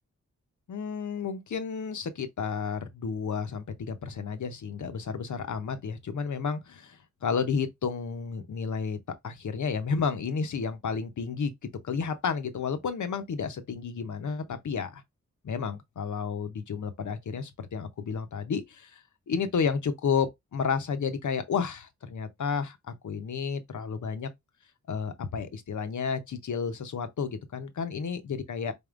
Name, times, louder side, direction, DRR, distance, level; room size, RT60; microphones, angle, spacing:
voice 1, 0.7-9.0 9.2-11.5 11.8-15.0 15.4-24.3 24.9-28.7, left 6 dB, 80° left, 0.7 m, -31 dB
4.1 x 3.5 x 2.4 m
wide cardioid pair, 65°, 30 cm